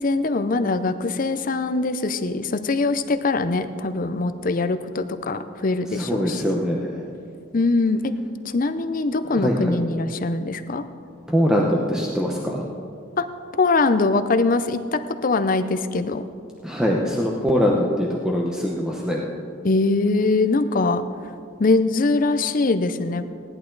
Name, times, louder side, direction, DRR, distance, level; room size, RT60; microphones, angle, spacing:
voice 1, 0.0-6.6 7.5-8.1 8.4-10.8 13.2-13.3 13.6-16.2 19.6-21.0 21.6-23.3, left 3 dB, 40° left, 9 dB, 0.5 m, -22 dB
voice 2, 5.9-7.0 9.4-9.6 11.3-12.6 16.6-19.2, equal, 5° right, -2 dB, 0.8 m, -22 dB
17.0 x 11.0 x 3.9 m, 2.3 s
head